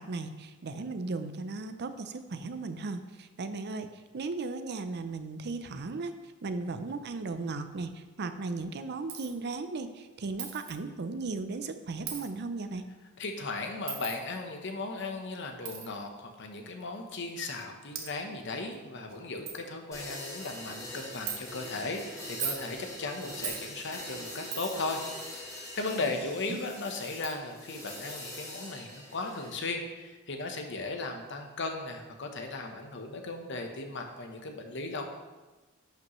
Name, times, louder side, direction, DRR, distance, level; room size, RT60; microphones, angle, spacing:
voice 1, 0.0-12.8 26.5-26.6, right 3 dB, 55° right, 9 dB, 0.5 m, -36 dB
Coin (dropping), 9.1-9.3 10.4-10.7 12.1-12.3 13.9-14.2 15.6-15.8 16.8-16.9 17.6-17.7 17.9-18.1 18.7-18.8 19.1-19.2 19.5-19.6 20.0-20.3 21.3-21.4 22.2-22.7 23.4-23.6 24.5-24.9 26.5-26.6 27.2-27.4, right 8 dB, 70° right, 1.1 m, -37 dB
voice 2, 13.2-35.0, left 3 dB, 60° left, 4 dB, 1.0 m, -37 dB
sound 1, 19.9-29.8, left 1 dB, 15° left, 1.9 m, -43 dB
11.5 x 5.3 x 3.1 m, 1.2 s
head